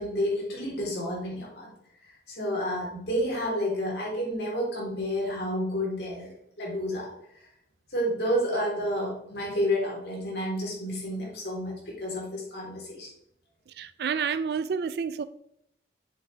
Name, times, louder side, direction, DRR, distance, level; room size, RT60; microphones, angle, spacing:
voice 1, 0.0-1.7 2.3-6.3 6.6-7.1 7.9-13.1, equal, 70° left, 3.5 m, -30 dB
voice 2, 13.7-15.2, right 6 dB, 60° right, 0.3 m, -29 dB
7.4 x 7.4 x 3.3 m
head